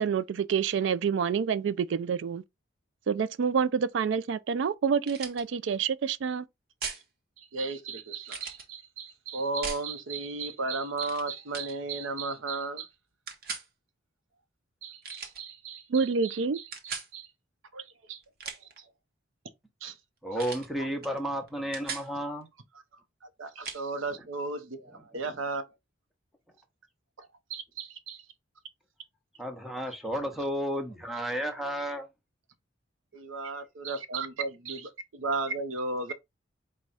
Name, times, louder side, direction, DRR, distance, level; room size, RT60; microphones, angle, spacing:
voice 1, 0.0-2.4 3.1-6.5 15.9-16.6, right 6 dB, 65° right, 0.3 m, -27 dB
sound 1, 5.0-5.4 6.8-7.0 8.3-8.7 9.6-9.9 11.0-11.2 11.5-11.7 13.3-13.7 15.0-15.4 16.7-17.1 18.2-18.8 20.4-20.7 21.0-21.2 21.5-22.1 23.6-23.8, right 5 dB, 50° right, 0.9 m, -38 dB
voice 2, 7.4-12.9 14.8-17.3 17.7-18.2 19.8-20.0 20.3-20.4 20.8-20.9 23.2-25.7 27.2-28.2 33.1-36.1, right 3 dB, 90° right, 0.7 m, -35 dB
voice 3, 20.2-22.5 29.4-32.1, equal, ahead, 0.8 m, -32 dB
4.7 x 2.2 x 3.9 m
head